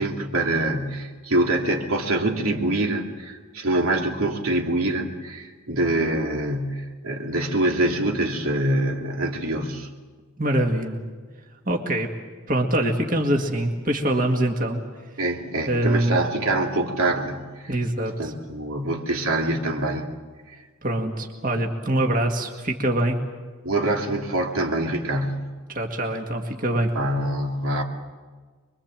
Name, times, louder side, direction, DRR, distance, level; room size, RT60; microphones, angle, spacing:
voice 1, 0.0-9.9 15.2-17.7 18.2-20.0 20.5-20.6 23.6-25.5 26.9-27.8, right 1 dB, 80° right, 1 dB, 2.7 m, -25 dB
voice 2, 10.4-11.0 11.7-12.1 12.5-14.8 15.7-16.2 17.7-18.3 20.8-23.2 25.7-26.9, right 1 dB, 40° right, 2 dB, 2.0 m, -24 dB
26.0 x 22.5 x 7.5 m, 1.5 s
head